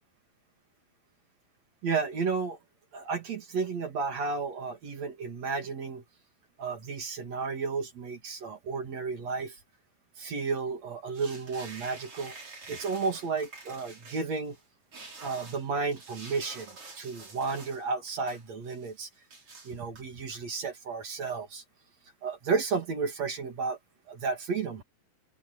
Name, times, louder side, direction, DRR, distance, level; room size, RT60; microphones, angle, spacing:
voice 1, 1.8-2.6 2.9-6.0 6.6-9.6 10.2-12.3 12.7-14.6 15.2-19.1 19.6-21.6 22.2-23.8 24.1-24.8, right 4 dB, 45° right, 2.8 m, -32 dB
sound 1, 11.1-14.6 14.9-17.8 18.1-19.0 19.3-20.0, right 3 dB, 30° right, 6.3 m, -48 dB
open air
omnidirectional pair, 4.9 m